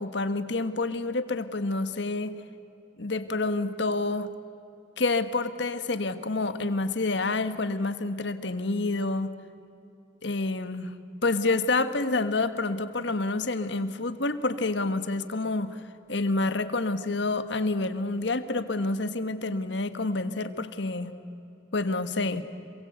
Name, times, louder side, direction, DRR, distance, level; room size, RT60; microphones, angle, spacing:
voice 1, 0.0-2.4 3.0-4.3 5.0-9.3 10.2-15.8 16.1-21.2 21.7-22.4, left 3 dB, 70° left, 10 dB, 1.5 m, -28 dB
27.0 x 23.5 x 8.1 m, 2.8 s
head